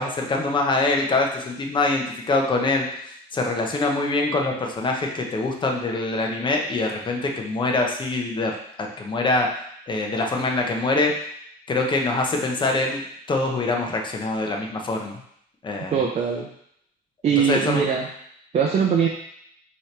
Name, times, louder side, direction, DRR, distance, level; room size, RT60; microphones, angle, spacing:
voice 1, 0.0-2.9 3.3-8.5 8.8-9.5 9.9-11.1 11.7-13.0 13.3-15.2 15.6-16.0 17.3-17.8, left 2 dB, 30° left, 2 dB, 0.8 m, -24 dB
voice 2, 15.9-16.5 17.2-18.0 18.5-19.1, right 7 dB, 40° right, 0 dB, 0.5 m, -21 dB
5.3 x 3.0 x 3.3 m, 0.70 s
cardioid pair, 110°, 17 cm